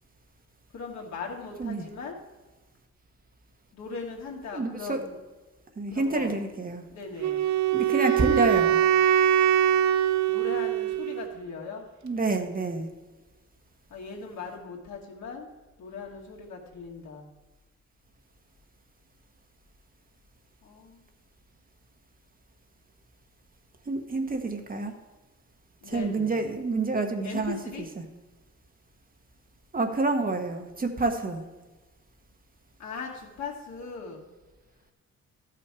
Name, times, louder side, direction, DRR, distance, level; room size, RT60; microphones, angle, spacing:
voice 1, 0.7-2.2 3.7-5.2 5.9-6.3 6.9-7.6 10.3-11.8 13.9-15.5 15.8-17.3 20.6-21.0 25.8-26.4 27.2-27.9 32.8-34.2, left 4 dB, 65° left, -1 dB, 2.3 m, -39 dB
voice 2, 4.5-5.0 5.8-6.8 7.7-8.8 12.0-12.9 23.9-24.9 25.9-27.6 28.0-28.1 29.7-31.4, right 3 dB, 30° right, 5 dB, 1.2 m, -28 dB
Wind instrument woodwind instrument, 7.2-11.3, right 10 dB, 65° right, 0.5 m, -23 dB
13.0 x 5.9 x 4.8 m, 1.2 s
cardioid pair, 90°, 30 cm